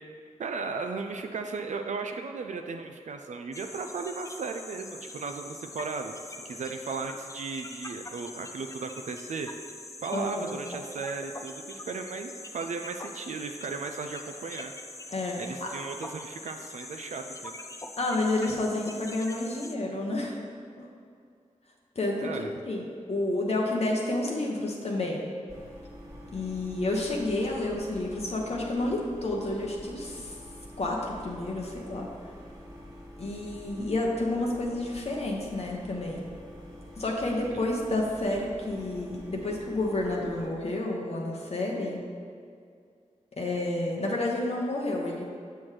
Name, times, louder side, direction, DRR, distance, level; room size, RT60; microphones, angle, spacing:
voice 1, 0.4-6.2 6.4-9.5 10.0-14.7 15.4-17.5 22.2-22.5 37.5-37.7, right 4 dB, 70° right, 5 dB, 0.4 m, -36 dB
sound 1, 3.5-19.7, left 2 dB, 25° left, 0.4 m, -43 dB
voice 2, 10.1-10.5 15.1-15.7 18.0-20.4 20.8-20.9 22.0-22.3 22.6-25.2 26.3-30.4 30.8-32.1 33.2-36.2 37.0-42.0 43.4-45.2, left 2 dB, 55° left, -1 dB, 0.8 m, -30 dB
sound 2, 25.5-40.5, equal, 30° right, 1.2 m, -47 dB
6.0 x 5.6 x 3.2 m, 2.3 s
cardioid pair, 60°, 13 cm